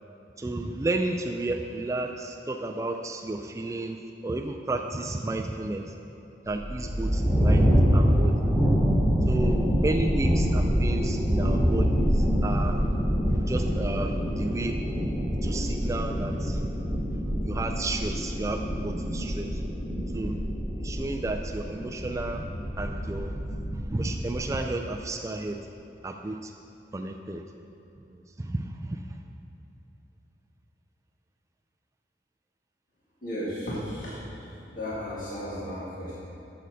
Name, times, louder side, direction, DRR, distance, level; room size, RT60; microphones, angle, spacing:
voice 1, 0.4-4.0 4.2-5.9 6.5-8.5 9.3-12.8 13.3-14.8 15.4-16.7 17.4-19.6 20.1-20.4 20.8-22.4 22.8-23.3 23.7-25.6 26.0-26.5 26.9-27.4 28.1-29.0, right 2 dB, 20° right, 3 dB, 0.3 m, -32 dB
sound 1, 6.5-24.5, equal, ahead, 2.0 m, -26 dB
voice 2, 33.2-36.1, equal, 50° left, -9 dB, 1.9 m, -35 dB
8.4 x 6.8 x 6.3 m, 2.9 s
head